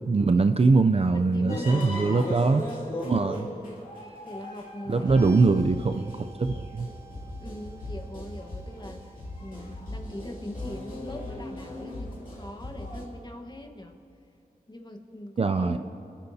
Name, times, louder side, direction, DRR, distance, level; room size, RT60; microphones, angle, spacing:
voice 1, 0.1-2.6 3.0-3.5 4.9-6.9 15.4-15.8, right 3 dB, 40° right, 9 dB, 0.4 m, -22 dB
voice 2, 1.1-2.3 3.3-3.8 4.2-5.5 7.4-14.0 14.7-15.8, left 1 dB, 30° left, 3 dB, 1.3 m, -41 dB
sound 1, 1.5-13.0, left 1 dB, 65° left, 2.6 m, -38 dB
sound 2, 5.0-12.6, right 5 dB, 20° right, 2.0 m, -54 dB
28.0 x 12.0 x 2.8 m, 2.5 s
wide cardioid pair, 95°, 15 cm